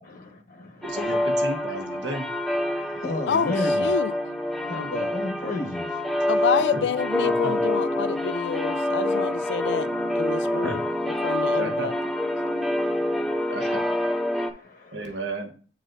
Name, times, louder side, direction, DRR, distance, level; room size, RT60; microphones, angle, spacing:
voice 1, 0.0-0.8 2.7-3.9 4.6-6.0 10.3-10.8 12.4-13.5 14.3-15.2, left 2 dB, 55° left, 1.0 m, -34 dB
sound 1, 0.8-14.5, left 1 dB, ahead, 0.4 m, -26 dB
voice 2, 0.8-2.3 6.5-6.8 7.2-7.6 10.6-10.7 11.5-11.9 13.5-13.8 14.9-15.5, right 2 dB, 75° right, 1.2 m, -33 dB
voice 3, 3.3-4.1 6.3-9.9 10.1-10.8 11.2-11.9, left 6 dB, 70° left, 0.3 m, -28 dB
9.0 x 4.0 x 2.6 m
head